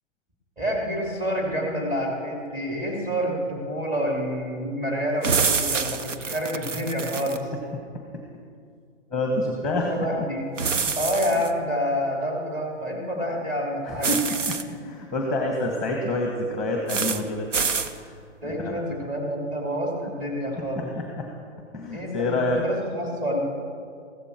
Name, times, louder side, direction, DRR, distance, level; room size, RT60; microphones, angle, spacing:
voice 1, 0.6-7.5 9.7-10.5 11.0-14.1 18.4-20.8 21.9-23.4, equal, 20° right, -1 dB, 3.1 m, -28 dB
sound 1, 5.2-7.4 10.6-11.5 14.0-14.6 16.9-17.2 17.5-17.9, right 5 dB, 75° right, 1.1 m, -26 dB
voice 2, 9.1-9.9 10.7-11.0 13.9-17.5 18.4-18.8 20.7-21.3 21.7-22.6, left 2 dB, ahead, 1 dB, 1.4 m, -27 dB
15.5 x 13.5 x 4.5 m, 2.2 s
hypercardioid pair, 145°, 37 cm